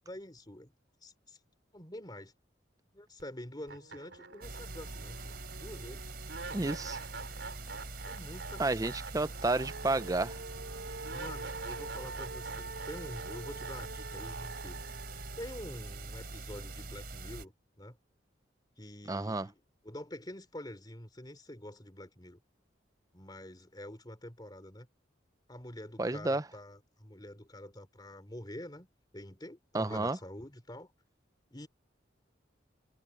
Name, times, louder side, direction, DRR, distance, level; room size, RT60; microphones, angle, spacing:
voice 1, 0.0-0.7 1.0-1.4 1.7-2.3 2.9-6.1 8.0-9.0 11.1-14.9 15.4-18.0 18.8-22.4 23.1-24.9 25.5-28.9 29.1-30.9 31.5-31.7, left 1 dB, 20° left, 3.5 m, -47 dB
sound 1, 3.2-3.3 3.7-16.7, right 3 dB, 75° right, 3.5 m, -45 dB
sound 2, 4.4-17.4, right 2 dB, 55° right, 3.8 m, -44 dB
voice 2, 6.5-7.0 8.6-10.4 19.1-19.5 26.0-26.4 29.7-30.2, right 2 dB, 20° right, 0.6 m, -31 dB
head